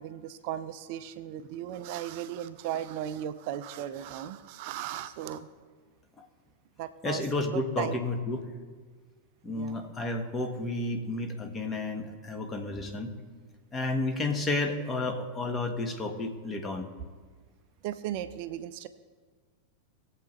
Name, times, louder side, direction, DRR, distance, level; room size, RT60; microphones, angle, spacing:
voice 1, 0.0-5.5 6.8-8.0 9.5-9.9 17.8-18.9, right 11 dB, 45° right, 13 dB, 0.5 m, -36 dB
voice 2, 7.0-8.4 9.4-13.1 13.7-16.9, left 2 dB, 20° left, 4 dB, 1.5 m, -31 dB
20.0 x 7.5 x 3.2 m, 1.5 s
figure-of-eight pair, 90°, 0 cm